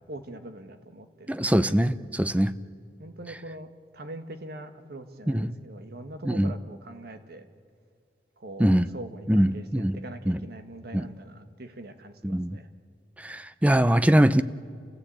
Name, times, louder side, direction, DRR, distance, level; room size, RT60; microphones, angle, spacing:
voice 1, 0.1-1.7 3.0-3.7 3.9-7.5 8.4-12.7, right 1 dB, 60° right, 8 dB, 1.5 m, -43 dB
voice 2, 1.3-2.5 5.3-5.5 6.2-6.5 8.6-8.9 9.3-10.0 10.3-10.4 10.9-11.1 12.2-12.6 13.2-14.4, right 1 dB, 10° right, 14 dB, 0.6 m, -22 dB
29.5 x 14.5 x 8.6 m, 2.3 s
head